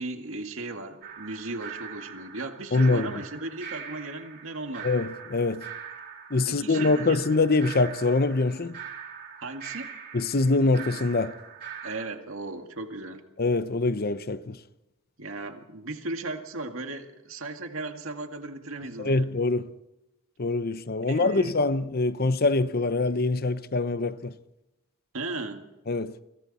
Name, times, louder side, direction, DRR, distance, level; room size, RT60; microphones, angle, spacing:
voice 1, 0.0-4.9 6.5-7.2 9.4-9.9 11.8-13.2 15.2-19.3 21.0-21.5 25.1-25.7, right 2 dB, 70° right, 2.2 m, -36 dB
sound 1, 1.0-12.0, right 7 dB, 50° right, 4.1 m, -42 dB
voice 2, 2.7-3.1 4.8-5.7 6.3-8.8 10.1-11.4 13.4-14.6 19.0-19.7 20.4-24.3 25.9-26.2, left 3 dB, 45° left, 0.8 m, -24 dB
29.0 x 25.5 x 4.3 m
head